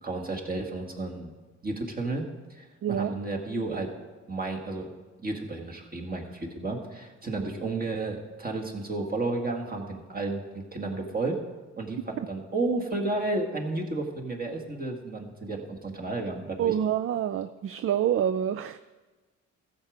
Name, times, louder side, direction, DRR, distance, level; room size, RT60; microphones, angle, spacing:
voice 1, 0.0-1.3 1.6-3.9 4.3-4.9 5.2-11.4 11.8-16.7, right 2 dB, 30° right, 1 dB, 2.0 m, -32 dB
voice 2, 2.8-3.1 16.6-18.8, right 10 dB, 45° right, 12 dB, 0.4 m, -27 dB
14.0 x 7.4 x 5.1 m, 1.3 s
cardioid pair, 90°, 30 cm